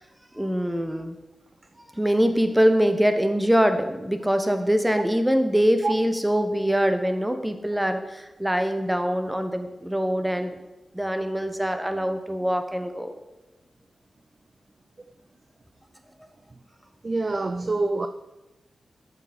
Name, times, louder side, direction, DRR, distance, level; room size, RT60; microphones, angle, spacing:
voice 1, 0.3-1.2 1.9-10.6 10.9-13.1, equal, 10° right, 1.0 m, -23 dB
voice 2, 17.0-18.1, right 3 dB, 40° right, 0.4 m, -25 dB
7.9 x 6.8 x 4.2 m
cardioid pair, 55°, 0 cm